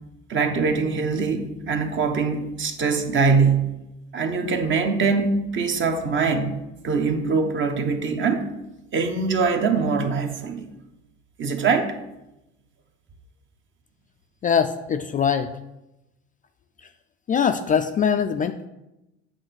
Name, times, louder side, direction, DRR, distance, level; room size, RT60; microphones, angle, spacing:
voice 1, 0.3-3.8 4.1-6.5 6.8-8.5 8.9-10.7 11.4-11.9, right 5 dB, 40° right, 5 dB, 1.1 m, -23 dB
voice 2, 14.4-15.5 17.3-18.7, left 7 dB, 30° left, 8 dB, 0.4 m, -22 dB
7.9 x 3.4 x 5.9 m, 0.93 s
supercardioid pair, 85°, 30 cm